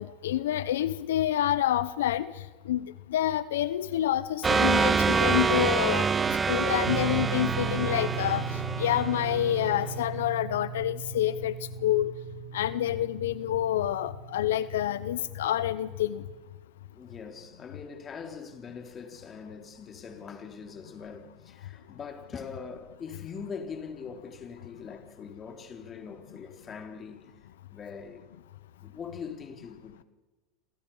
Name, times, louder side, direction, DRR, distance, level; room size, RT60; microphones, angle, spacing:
voice 1, 0.0-6.1 6.5-11.6 11.8-12.1 12.5-16.2, left 12 dB, 90° left, 0.8 m, -28 dB
sound 1, 4.4-9.8, right 5 dB, 20° right, 0.9 m, -26 dB
sound 2, 6.8-16.4, right 5 dB, 85° right, 2.5 m, -38 dB
voice 2, 16.9-27.3 27.7-28.3 28.8-30.0, left 6 dB, 30° left, 3.5 m, -42 dB
28.5 x 27.0 x 5.6 m
supercardioid pair, 115°, 0 cm